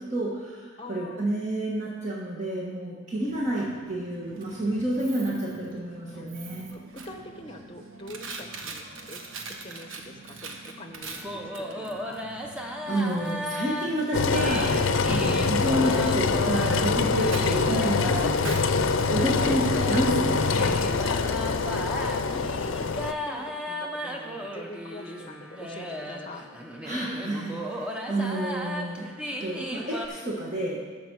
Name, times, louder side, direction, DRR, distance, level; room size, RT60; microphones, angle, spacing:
voice 1, 0.1-0.6 0.9-6.7 12.9-14.7 15.1-20.6 26.8-29.1 29.4-30.8, right 1 dB, 35° right, -5 dB, 1.4 m, -29 dB
voice 2, 0.8-1.2 6.1-6.2 6.7-12.2 18.0-18.2 19.4-19.6 21.8-23.0 23.2-26.5, left 2 dB, 25° left, 5 dB, 0.9 m, -43 dB
Coin (dropping), 3.1-20.9, right 3 dB, 80° right, 1.1 m, -44 dB
sound 1, 11.0-30.1, equal, 5° right, 0.7 m, -36 dB
Engine, 14.1-23.1, left 4 dB, 75° left, 0.5 m, -25 dB
13.0 x 5.2 x 6.2 m, 1.5 s
head